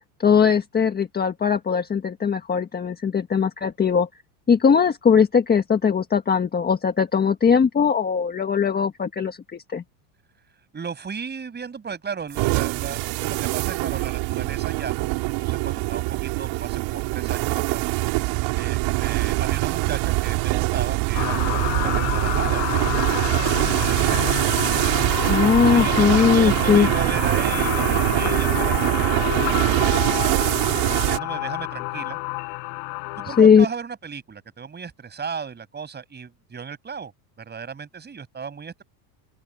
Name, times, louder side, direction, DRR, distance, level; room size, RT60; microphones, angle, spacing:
voice 1, 0.2-4.1 4.5-9.4 9.7-9.8 25.3-26.9 33.4-33.6, left 6 dB, 20° left, 1.5 m, -19 dB
voice 2, 10.7-15.1 15.4-17.9 18.5-24.3 25.3-32.2 33.2-37.1 37.4-38.8, right 6 dB, 20° right, 6.3 m, -35 dB
sound 1, 12.3-31.2, right 24 dB, 60° right, 4.4 m, -23 dB
sound 2, 21.1-33.4, left 38 dB, 65° left, 4.4 m, -29 dB
open air
supercardioid pair, 125°, 48 cm